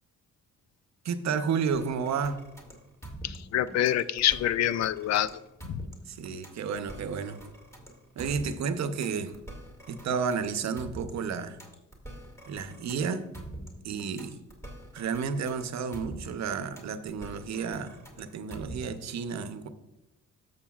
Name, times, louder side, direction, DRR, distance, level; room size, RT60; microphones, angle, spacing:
voice 1, 1.0-2.4 6.1-7.4 8.2-9.3 9.9-11.6 12.5-13.2 13.8-14.4 14.9-19.7, right 6 dB, 65° right, 10 dB, 0.8 m, -31 dB
sound 1, 1.7-19.1, right 1 dB, 10° left, 2.1 m, -45 dB
voice 2, 3.2-5.3 5.6-5.9, left 11 dB, 60° left, 16 dB, 0.4 m, -26 dB
13.0 x 6.6 x 2.4 m, 0.95 s
cardioid pair, 90°, 30 cm